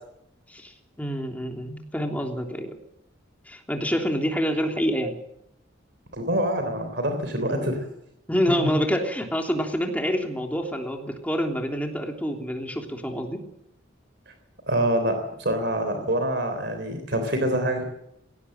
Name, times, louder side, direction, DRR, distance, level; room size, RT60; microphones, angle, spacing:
voice 1, 0.5-2.7 3.5-5.1 7.5-7.8 8.3-13.4 15.9-16.1, equal, 10° left, 3 dB, 3.2 m, -27 dB
voice 2, 6.1-7.8 14.3-14.4 14.7-17.8, right 1 dB, 60° right, 6 dB, 3.5 m, -25 dB
19.0 x 17.5 x 7.8 m, 0.78 s
head